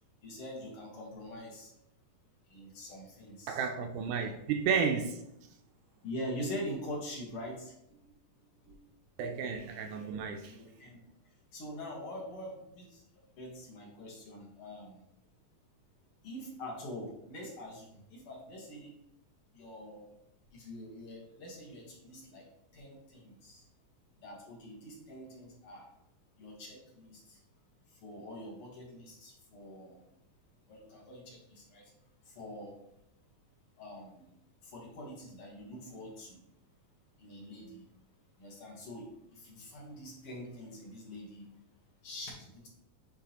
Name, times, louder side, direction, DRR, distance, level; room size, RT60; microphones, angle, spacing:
voice 1, 0.2-1.7 2.5-3.7 4.2-4.3 6.0-7.7 8.6-8.8 9.9-10.0 10.5-11.0 11.5-13.0 13.4-15.0 16.2-19.0 19.5-20.1 20.5-22.4 22.7-23.6 24.2-25.9 26.4-27.4 28.0-30.0 30.7-31.9 32.3-32.8 33.8-34.3 34.6-36.5 37.2-37.8 38.4-41.5 42.0-42.7, equal, 55° left, 1.8 m, -44 dB
voice 2, 3.5-5.2 9.2-10.6, right 6 dB, 80° right, 1.9 m, -32 dB
9.8 x 3.8 x 2.9 m
omnidirectional pair, 3.9 m